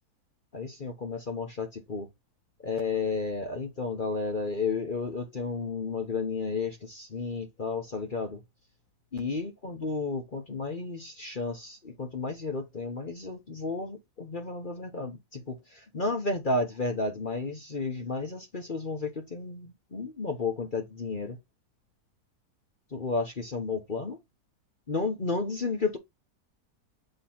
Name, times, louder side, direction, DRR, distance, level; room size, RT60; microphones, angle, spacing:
voice 1, 0.5-2.1 2.6-8.4 9.1-21.4 22.9-24.2 24.9-26.0, left 3 dB, 35° left, 1.1 m, -32 dB
7.9 x 3.2 x 4.3 m
omnidirectional pair, 1.7 m